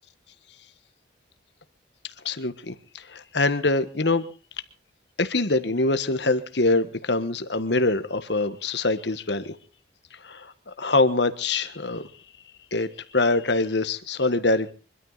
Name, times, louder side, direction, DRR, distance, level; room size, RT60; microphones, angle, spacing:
voice 1, 2.2-4.3 5.2-9.6 10.2-12.1 12.7-14.7, left 2 dB, 65° left, 11 dB, 1.5 m, -24 dB
24.5 x 13.0 x 4.1 m, 0.38 s
head